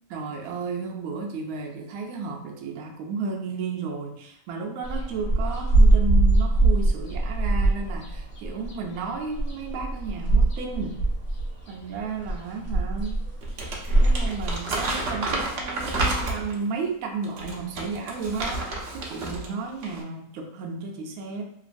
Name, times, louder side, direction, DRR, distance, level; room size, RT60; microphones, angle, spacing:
voice 1, 0.1-11.1 11.7-13.2 13.9-21.4, right 4 dB, 75° right, 1 dB, 1.0 m, -33 dB
sound 1, 4.8-14.6, right 2 dB, 60° left, 1.2 m, -22 dB
Crumpling crinkling, 13.4-16.6 17.2-19.5 19.8-20.0, right 2 dB, 60° right, 0.7 m, -30 dB
2.9 x 2.5 x 2.5 m, 0.75 s
omnidirectional pair, 1.6 m